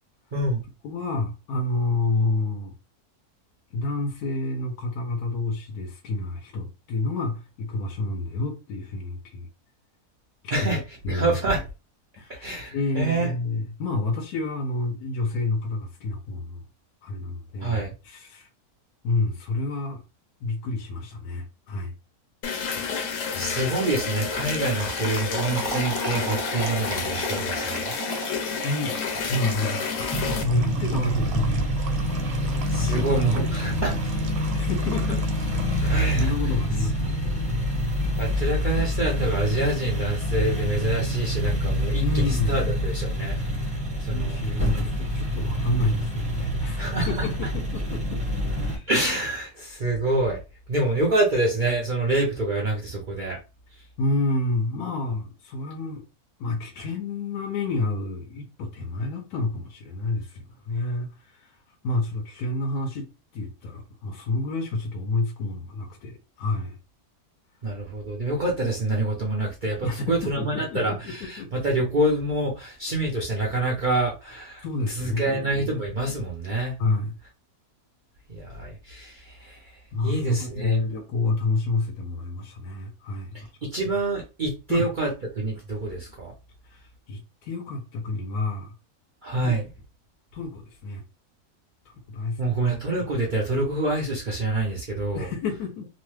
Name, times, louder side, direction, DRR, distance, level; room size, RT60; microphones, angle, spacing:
voice 1, 0.3-0.6 10.5-10.8 11.1-11.6 12.4-13.3 17.6-17.9 23.3-27.9 32.7-34.0 35.8-36.3 38.2-43.4 44.0-44.4 46.8-47.3 48.9-50.4 50.7-53.4 67.6-76.8 78.3-80.8 83.3-83.4 83.7-86.3 89.2-89.7 92.4-95.3, right 2 dB, 60° right, 0.5 m, -26 dB
voice 2, 0.8-2.7 3.7-9.5 10.4-10.7 11.0-11.4 12.2-12.5 12.7-16.6 17.0-17.8 18.0-18.5 19.0-20.0 20.4-21.9 28.6-29.0 29.3-29.8 30.3-31.8 32.7-33.8 34.5-35.2 35.7-37.3 42.0-42.6 44.1-48.2 48.6-48.9 54.0-56.0 56.4-61.5 61.8-63.1 63.3-66.8 69.8-71.5 74.6-75.6 76.8-77.2 79.9-83.5 84.7-84.9 86.7-88.7 89.4-89.5 90.3-91.0 91.9-92.6 95.1-95.9, left 2 dB, 80° left, 1.1 m, -29 dB
sound 1, 22.4-30.4, left 6 dB, 65° left, 0.9 m, -29 dB
sound 2, 23.8-36.5, right 6 dB, 75° right, 1.0 m, -39 dB
sound 3, 30.1-48.8, equal, 5° right, 0.7 m, -26 dB
3.0 x 2.0 x 3.1 m
omnidirectional pair, 1.6 m